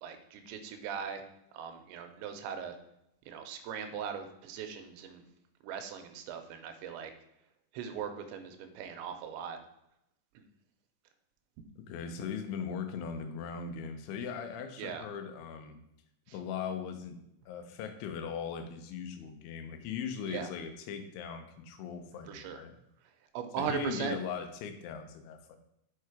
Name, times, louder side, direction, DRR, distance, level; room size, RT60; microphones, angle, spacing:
voice 1, 0.0-1.2 1.5-2.8 3.3-5.2 5.6-7.1 7.7-9.6 10.4-10.5 14.8-15.1 16.3-16.4 20.3-20.5 22.3-22.6 23.3-24.2, right 7 dB, 85° right, 7 dB, 3.0 m, -39 dB
voice 2, 11.8-15.8 16.3-17.2 17.5-22.8 23.6-25.6, left 7 dB, 85° left, 7 dB, 3.2 m, -39 dB
6.9 x 4.7 x 4.8 m, 0.80 s
omnidirectional pair, 5.2 m